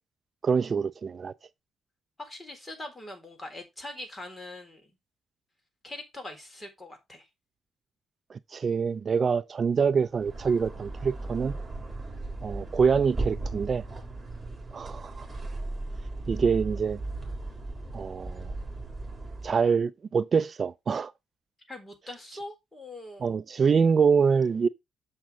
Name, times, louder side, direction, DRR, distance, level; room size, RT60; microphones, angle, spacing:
voice 1, 0.4-1.3 8.3-11.5 12.4-13.8 14.7-15.3 16.3-17.0 17.9-18.5 19.4-21.1 23.2-24.7, right 6 dB, 40° right, 0.5 m, -25 dB
voice 2, 2.2-4.9 5.8-7.3 21.7-23.4, left 1 dB, 20° left, 3.8 m, -42 dB
sound 1, 10.1-19.6, right 2 dB, 15° right, 3.9 m, -36 dB
7.4 x 5.9 x 5.3 m
cardioid pair, 90°, 0 cm